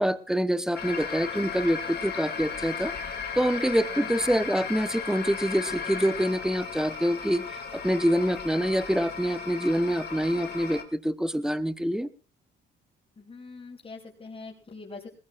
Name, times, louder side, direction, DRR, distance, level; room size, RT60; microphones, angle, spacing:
voice 1, 0.0-7.4 7.7-12.1, equal, 5° right, 10 dB, 1.1 m, -26 dB
sound 1, 0.7-10.8, left 5 dB, 55° left, 2.6 m, -36 dB
voice 2, 13.2-15.1, left 3 dB, 30° left, -5 dB, 5.7 m, -43 dB
20.0 x 19.5 x 2.6 m, 0.35 s
cardioid pair, 90°, 20 cm